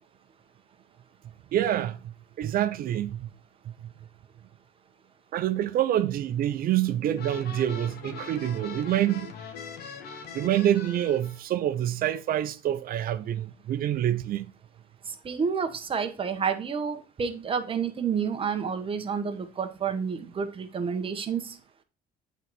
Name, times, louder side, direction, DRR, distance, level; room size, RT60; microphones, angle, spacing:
voice 1, 1.5-3.3 3.7-3.9 5.3-9.3 10.3-14.4, right 12 dB, 60° right, 0.6 m, -27 dB
sound 1, 7.2-11.4, left 6 dB, 70° left, 1.2 m, -41 dB
voice 2, 15.2-21.4, right 6 dB, 30° right, 1.1 m, -29 dB
8.0 x 4.0 x 4.6 m
cardioid pair, 110°, 17 cm